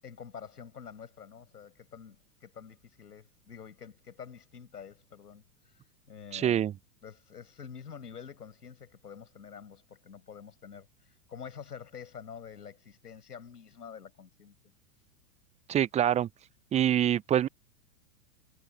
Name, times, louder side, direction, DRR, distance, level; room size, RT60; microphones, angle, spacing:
voice 1, 0.0-5.4 5.7-5.8 6.1-6.6 7.0-14.6, left 7 dB, 90° left, 7.4 m, -47 dB
voice 2, 6.3-6.7 15.7-16.3 16.7-17.5, right 10 dB, 15° right, 0.6 m, -25 dB
hypercardioid pair, 110°, 46 cm